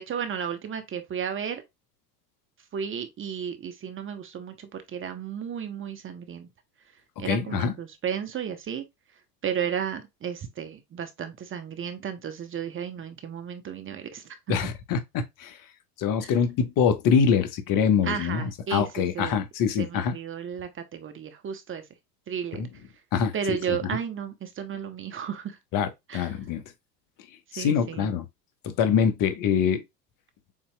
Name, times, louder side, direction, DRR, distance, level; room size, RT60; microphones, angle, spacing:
voice 1, 0.0-1.6 2.7-6.5 7.2-8.8 9.4-14.6 16.2-16.3 18.0-19.4 19.8-21.9 22.3-22.6 23.3-25.6 26.1-26.4 27.5-28.1, right 8 dB, 25° right, 0.8 m, -33 dB
voice 2, 7.2-7.7 14.5-15.6 16.0-20.1 22.5-22.7 23.1-23.3 23.7-23.8 25.7-26.6 27.5-28.2 28.6-29.8, left 7 dB, 40° left, 1.1 m, -24 dB
7.2 x 2.9 x 2.2 m
hypercardioid pair, 95°, 49 cm